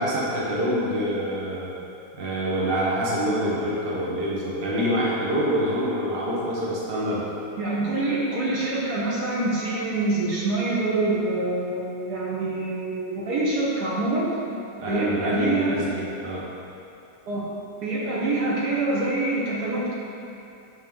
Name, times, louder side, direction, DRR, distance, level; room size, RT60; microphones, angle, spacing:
voice 1, 0.0-1.7 2.1-7.2 14.8-16.5, equal, 35° right, -6 dB, 1.3 m, -26 dB
voice 2, 7.6-14.3 14.9-15.8 17.3-17.4 17.8-20.0, right 2 dB, 70° right, -6 dB, 1.7 m, -25 dB
10.5 x 4.1 x 3.8 m, 2.7 s
omnidirectional pair, 1.8 m